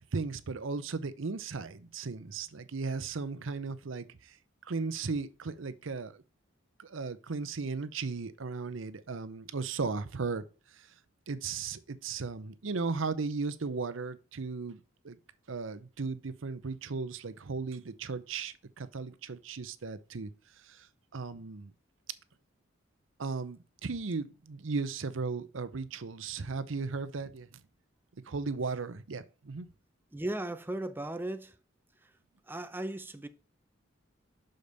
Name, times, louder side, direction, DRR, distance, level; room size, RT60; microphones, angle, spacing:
voice 1, 0.1-4.4 4.7-6.2 6.8-10.9 11.3-15.2 15.5-20.3 20.6-20.9 21.1-21.7 23.2-27.6 28.3-29.7, right 4 dB, 80° right, 0.7 m, -36 dB
voice 2, 30.1-31.6 32.5-33.3, right 1 dB, 10° right, 0.5 m, -36 dB
6.6 x 5.1 x 4.0 m
head